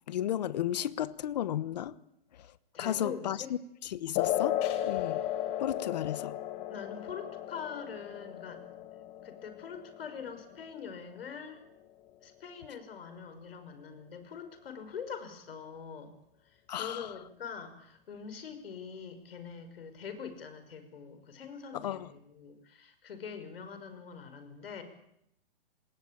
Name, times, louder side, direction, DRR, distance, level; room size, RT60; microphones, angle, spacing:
voice 1, 0.1-2.0 2.3-5.2 5.6-6.4 16.7-17.1 21.7-22.1, left 11 dB, 45° left, 18 dB, 1.1 m, -34 dB
voice 2, 2.7-3.5 6.7-8.7 9.2-11.6 12.2-16.1 16.4-24.8, left 6 dB, 80° left, 9 dB, 5.5 m, -44 dB
sound 1, 4.1-11.2, left 12 dB, 20° left, 1.6 m, -35 dB
27.0 x 19.5 x 8.7 m, 0.77 s
hypercardioid pair, 170°, 29 cm